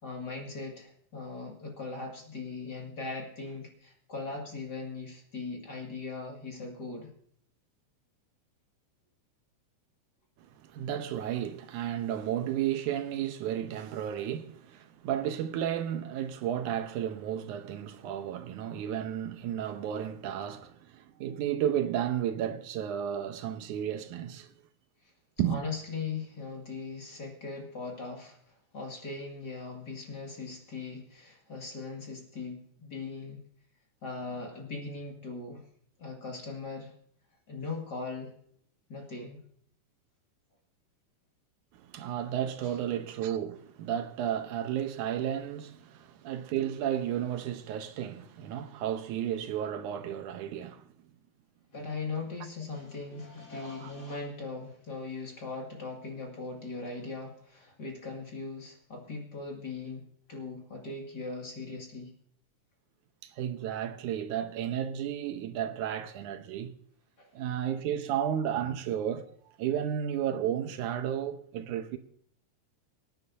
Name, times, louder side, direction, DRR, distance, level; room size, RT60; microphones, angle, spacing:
voice 1, 0.0-7.1 25.5-33.4 34.0-35.6 36.0-36.9 37.5-38.3 38.9-39.4 51.7-62.1 67.2-67.3, left 3 dB, 35° left, 2.4 m, -39 dB
voice 2, 10.4-24.5 25.4-25.6 41.7-50.9 53.8-53.9 63.2-66.7 67.3-69.3 69.6-72.0, right 10 dB, 85° right, 2.3 m, -33 dB
24.5 x 9.8 x 2.7 m
omnidirectional pair, 3.5 m